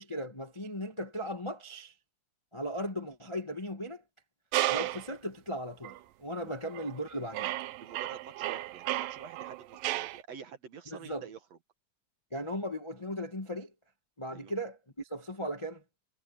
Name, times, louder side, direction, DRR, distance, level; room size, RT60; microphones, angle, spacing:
voice 1, 0.0-1.9 2.5-4.0 4.7-7.5 10.9-11.2 12.3-13.7 14.2-15.8, equal, 20° left, 0.7 m, -37 dB
sound 1, 4.5-5.1 5.8-6.0 6.6-7.0 7.3-10.2, right 16 dB, 90° right, 2.6 m, -33 dB
voice 2, 7.8-11.6 14.3-14.5, right 7 dB, 55° right, 2.4 m, -47 dB
omnidirectional pair, 3.9 m